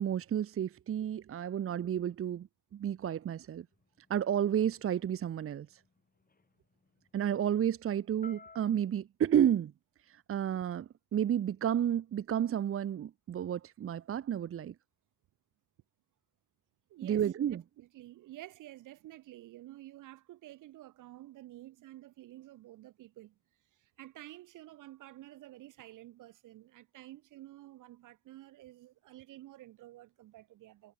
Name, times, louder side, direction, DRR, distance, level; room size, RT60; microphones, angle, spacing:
voice 1, 0.0-3.7 4.1-5.8 7.1-9.7 10.1-14.7 17.0-17.6, right 9 dB, 45° right, 0.8 m, -31 dB
sound 1, 3.7-8.7, left 4 dB, 30° left, 6.7 m, -58 dB
voice 2, 16.9-17.2 17.5-23.4 23.7-30.9, right 15 dB, 90° right, 6.5 m, -51 dB
cardioid pair, 90°, 30 cm